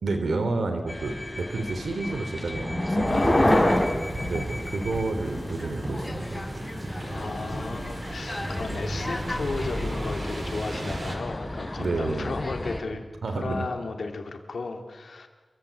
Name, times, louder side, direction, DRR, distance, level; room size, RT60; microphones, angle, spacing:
voice 1, 0.0-3.4 4.2-6.5 8.6-8.7 11.8-12.4 13.2-13.7, right 3 dB, 90° right, 7 dB, 3.3 m, -30 dB
sound 1, 0.9-12.8, left 1 dB, 20° left, 4.9 m, -29 dB
voice 2, 3.0-3.8 7.0-13.0 13.3-15.3, left 3 dB, 80° left, 5 dB, 3.4 m, -34 dB
sound 2, 3.0-11.2, right 1 dB, 50° right, 5.3 m, -35 dB
28.5 x 24.0 x 8.7 m, 1.2 s
wide cardioid pair, 80°, 0 cm